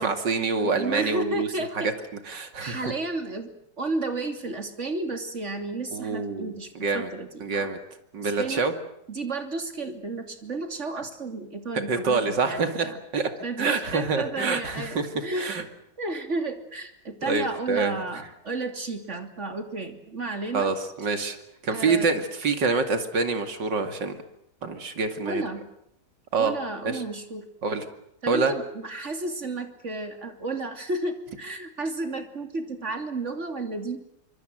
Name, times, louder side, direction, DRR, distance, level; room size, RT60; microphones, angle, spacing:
voice 1, 0.0-1.5 1.7-1.8 2.3-2.8 5.9-7.1 7.4-7.8 8.1-8.7 11.7-12.9 13.1-13.3 13.6-15.6 17.3-17.9 20.5-21.4 21.6-24.2 24.6-25.4 26.3-26.5 26.8-27.0 27.6-27.8 28.3-28.5, right 4 dB, 75° right, 7 dB, 3.1 m, -26 dB
voice 2, 0.6-1.9 2.6-7.7 8.2-8.7 9.1-13.0 13.4-15.6 16.0-20.7 21.7-22.1 25.2-25.7 26.4-27.5 28.2-34.0, right 2 dB, 40° right, 6 dB, 3.2 m, -32 dB
25.5 x 25.0 x 7.8 m, 0.77 s
omnidirectional pair, 1.9 m